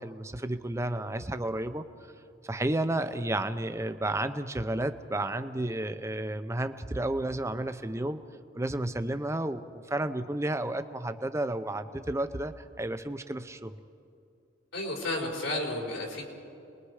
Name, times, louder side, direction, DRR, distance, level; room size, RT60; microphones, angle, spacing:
voice 1, 0.0-1.9 2.4-8.2 8.5-13.7, right 1 dB, 15° right, 10 dB, 0.6 m, -32 dB
voice 2, 14.7-16.2, left 1 dB, 80° left, -1 dB, 5.0 m, -32 dB
28.5 x 21.0 x 4.9 m, 2.5 s
head